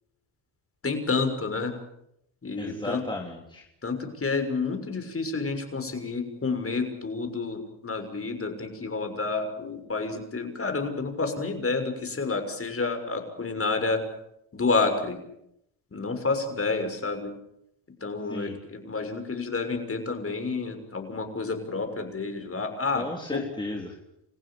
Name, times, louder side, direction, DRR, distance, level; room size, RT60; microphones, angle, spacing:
voice 1, 0.8-1.7 2.4-3.0 3.8-14.0 14.5-15.2 15.9-17.3 18.0-23.1 23.3-23.4, left 4 dB, 25° left, 7 dB, 6.4 m, -29 dB
voice 2, 2.6-3.6 18.2-18.6 22.9-24.0, left 1 dB, 10° left, 0 dB, 3.9 m, -35 dB
29.0 x 15.5 x 8.8 m, 0.80 s
supercardioid pair, 85°, 50 cm